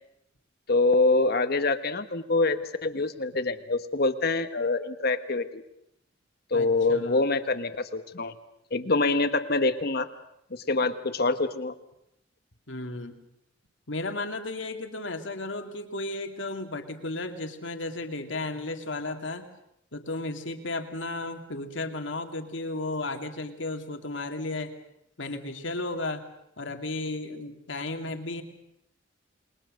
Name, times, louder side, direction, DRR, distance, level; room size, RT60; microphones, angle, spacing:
voice 1, 0.7-5.6 6.5-8.3 8.7-10.1 10.5-11.7, left 3 dB, 55° left, 9 dB, 1.3 m, -25 dB
voice 2, 6.5-7.2 12.7-13.2 13.9-19.5 19.9-24.7 25.2-26.2 26.6-28.4, left 2 dB, 75° left, 6 dB, 2.4 m, -34 dB
28.0 x 21.5 x 6.5 m, 0.77 s
head